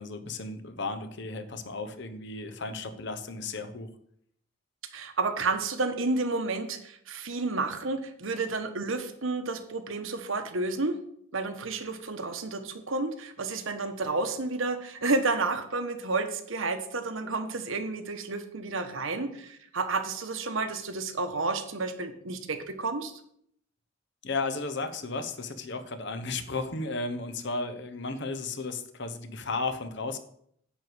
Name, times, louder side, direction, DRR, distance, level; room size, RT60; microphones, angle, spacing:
voice 1, 0.0-3.9 24.2-30.2, left 3 dB, 55° left, 8 dB, 1.0 m, -34 dB
voice 2, 4.9-11.0 11.3-23.1, right 3 dB, 70° right, 7 dB, 1.2 m, -31 dB
10.0 x 4.7 x 8.0 m, 0.67 s
head